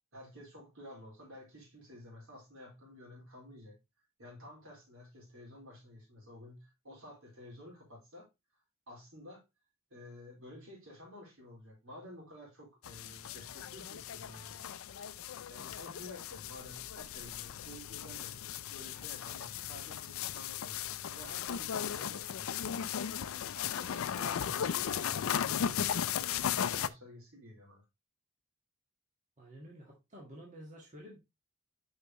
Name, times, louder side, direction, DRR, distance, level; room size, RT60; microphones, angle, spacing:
voice 1, 0.1-3.8 4.2-8.3 8.9-9.4 9.9-14.9 15.5-23.3 23.5-27.8, left 1 dB, 70° right, 4.1 m, -52 dB
sound 1, 12.8-26.9, left 9 dB, 75° left, 0.4 m, -36 dB
voice 2, 29.4-31.2, equal, 35° right, 1.6 m, -51 dB
6.9 x 5.6 x 3.0 m
head